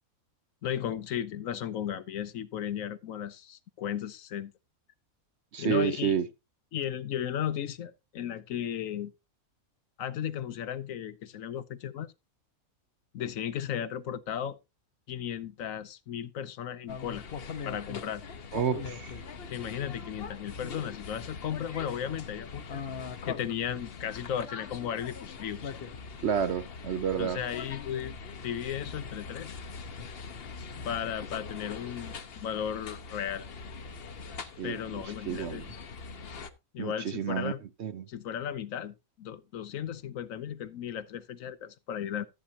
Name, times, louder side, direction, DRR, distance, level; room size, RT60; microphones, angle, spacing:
voice 1, 0.6-4.5 5.6-6.1 6.7-9.1 10.0-12.1 13.1-14.6 15.1-17.2 17.6-18.2 19.5-22.9 23.3-25.8 27.2-28.1 28.4-29.6 30.8-33.4 34.6-35.6 36.7-37.6 38.1-42.3, left 9 dB, 70° left, 1.1 m, -35 dB
voice 2, 5.5-6.2 18.5-19.2 26.2-27.4 34.6-34.8 35.3-35.7 36.8-37.5 37.8-38.1, right 8 dB, 60° right, 0.9 m, -30 dB
sound 1, 16.9-36.5, left 5 dB, 50° left, 1.0 m, -42 dB
14.0 x 8.5 x 2.8 m
omnidirectional pair, 1.5 m